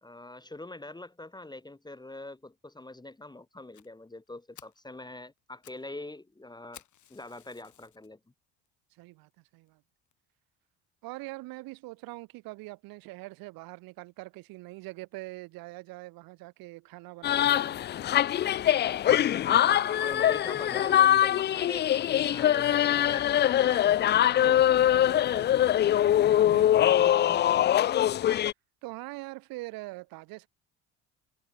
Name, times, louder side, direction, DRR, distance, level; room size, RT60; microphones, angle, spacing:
voice 1, 0.0-6.8 7.1-8.2 19.5-21.9 22.3-24.7, left 2 dB, 10° left, 1.6 m, -43 dB
Fire, 3.7-3.9 4.3-4.4 4.5-4.8 5.4-5.9 6.1-6.2 6.7-8.1 8.7-8.8 9.3-9.4 9.7-9.8 10.1-10.2, left 12 dB, 55° left, 3.2 m, -54 dB
voice 2, 8.9-9.8 11.0-17.7 25.0-27.7 28.8-30.5, right 22 dB, 75° right, 6.0 m, -44 dB
sound 1, 17.2-28.5, left 11 dB, 30° left, 0.4 m, -23 dB
supercardioid pair, 75°, 35 cm